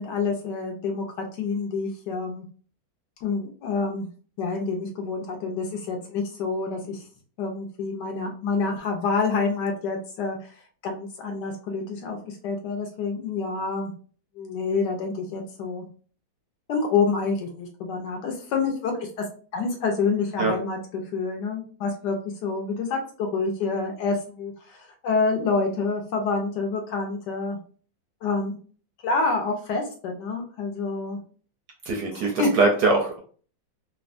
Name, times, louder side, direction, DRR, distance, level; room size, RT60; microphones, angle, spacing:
voice 1, 0.0-2.5 3.2-4.1 4.4-7.0 7.4-10.5 10.8-13.9 14.4-15.9 16.7-19.1 19.5-22.2 22.4-27.6 28.2-28.6 29.0-31.2 32.4-32.5, left 4 dB, 75° left, 3 dB, 1.1 m, -27 dB
voice 2, 31.9-33.2, right 3 dB, 70° right, 1 dB, 1.0 m, -22 dB
3.4 x 2.1 x 2.4 m, 0.42 s
omnidirectional pair, 2.1 m